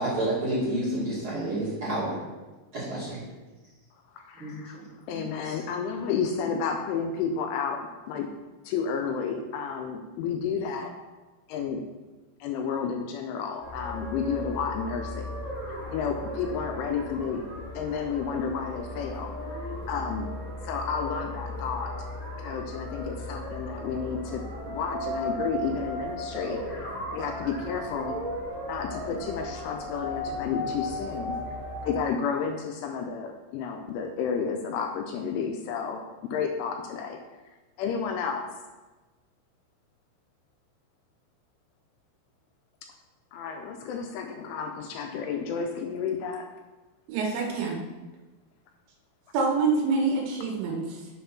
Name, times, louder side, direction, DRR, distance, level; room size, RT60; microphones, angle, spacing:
voice 1, 0.0-2.2 2.7-3.2 4.3-4.6 5.4-5.5, right 1 dB, 40° right, -10 dB, 2.0 m, -29 dB
voice 2, 4.1-4.8 5.1-8.3 8.6-10.9 11.5-11.8 12.4-15.3 15.7-17.4 17.7-20.3 20.6-21.9 22.4-28.2 28.7-31.4 31.8-36.0 36.3-37.2 37.8-38.5 43.3-46.5, left 6 dB, 80° left, 4 dB, 2.9 m, -31 dB
sound 1, 13.6-32.0, left 1 dB, 45° left, 3.6 m, -36 dB
voice 3, 47.1-47.8 49.3-51.1, right 4 dB, 75° right, 1 dB, 3.0 m, -26 dB
7.1 x 5.2 x 5.9 m, 1.2 s
omnidirectional pair, 5.9 m